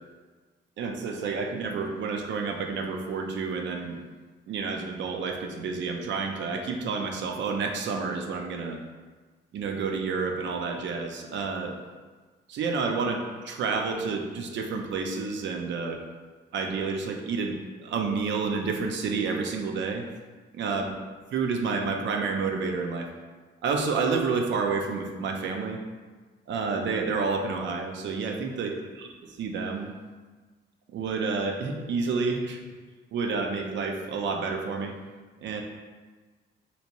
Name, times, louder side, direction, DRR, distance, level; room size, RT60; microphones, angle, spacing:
voice 1, 0.8-4.0 4.5-8.8 9.5-11.7 12.5-16.0 16.5-17.6 17.8-20.0 20.5-20.9 21.3-23.1 23.6-25.8 26.5-29.1 29.4-29.9 30.9-32.6 33.1-34.9 35.4-35.6, right 4 dB, 65° right, 3 dB, 0.5 m, -29 dB
3.3 x 2.8 x 2.9 m, 1.4 s
cardioid pair, 90°, 20 cm